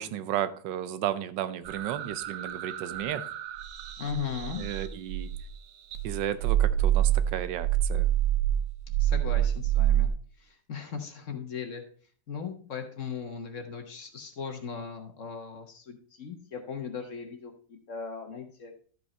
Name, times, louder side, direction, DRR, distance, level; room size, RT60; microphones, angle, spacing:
voice 1, 0.0-3.3 4.6-5.3 6.0-8.1, right 11 dB, 80° right, 14 dB, 1.4 m, -33 dB
sound 1, 1.7-5.6 5.9-10.1, right 12 dB, 60° right, 0.9 m, -27 dB
voice 2, 4.0-4.6 9.0-10.1 10.4-11.8 12.3-18.7, left 6 dB, 50° left, 6 dB, 1.3 m, -38 dB
12.5 x 5.4 x 4.3 m, 0.43 s
omnidirectional pair, 2.0 m